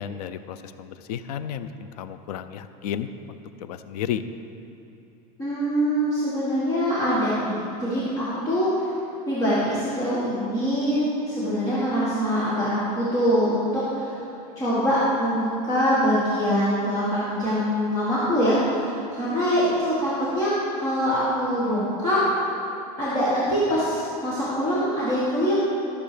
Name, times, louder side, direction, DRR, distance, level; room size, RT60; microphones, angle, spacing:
voice 1, 0.0-1.7 2.0-4.2, left 9 dB, 85° left, 11 dB, 0.6 m, -33 dB
voice 2, 5.4-8.9 9.2-14.1 14.5-22.2 23.0-25.6, equal, 20° left, -10 dB, 1.8 m, -24 dB
13.5 x 6.8 x 5.1 m, 3.0 s
supercardioid pair, 175°, 19 cm